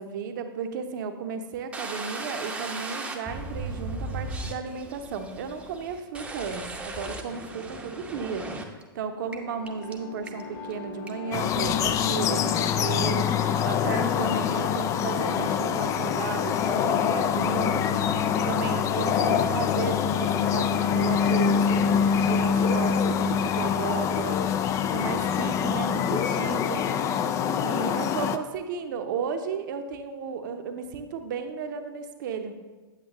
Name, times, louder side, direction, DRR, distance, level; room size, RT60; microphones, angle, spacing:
voice 1, 0.0-8.5 8.9-18.0 18.5-24.4 24.9-26.8 27.6-32.6, right 6 dB, 55° right, 7 dB, 0.8 m, -34 dB
sound 1, 1.7-8.8 9.3-9.4 9.7-9.9 10.3-10.7 11.1-11.2 11.5-12.0, right 2 dB, 10° right, 0.8 m, -37 dB
sound 2, 9.0-24.5, left 4 dB, 40° left, 1.5 m, -43 dB
sound 3, 11.3-28.4, left 8 dB, 25° left, 0.3 m, -25 dB
8.5 x 8.2 x 3.0 m, 1.3 s
figure-of-eight pair, 100°, 12 cm